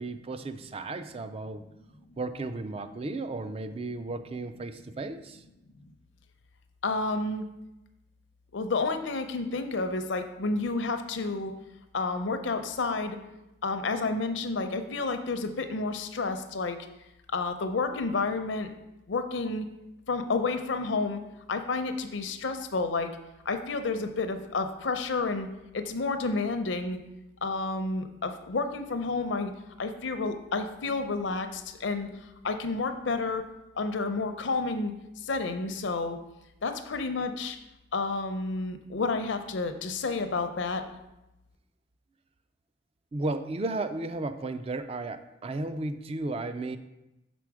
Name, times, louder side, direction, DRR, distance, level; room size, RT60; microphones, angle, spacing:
voice 1, 0.0-1.6 2.2-5.4 43.1-46.8, right 2 dB, 30° right, 10 dB, 0.3 m, -34 dB
voice 2, 6.8-7.4 8.5-11.5 11.9-13.2 13.6-16.8 17.3-18.7 19.1-19.7 20.1-21.2 21.5-23.1 23.5-25.5 25.7-27.0 27.4-29.5 29.8-32.1 32.4-33.4 33.8-34.9 35.2-36.2 36.6-37.6 37.9-40.8, left 3 dB, 70° left, 8 dB, 0.6 m, -30 dB
6.1 x 4.2 x 4.7 m, 0.93 s
head